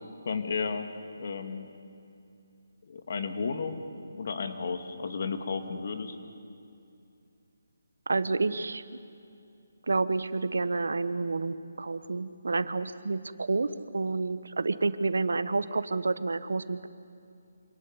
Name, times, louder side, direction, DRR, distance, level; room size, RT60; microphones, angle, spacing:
voice 1, 0.2-0.9 1.2-1.7 2.9-3.8 4.1-6.2, left 5 dB, 50° left, 7 dB, 2.1 m, -33 dB
voice 2, 8.1-9.0 9.9-16.9, right 3 dB, 80° right, 14 dB, 1.1 m, -29 dB
26.5 x 17.5 x 9.6 m, 2.6 s
hypercardioid pair, 165°, 0 cm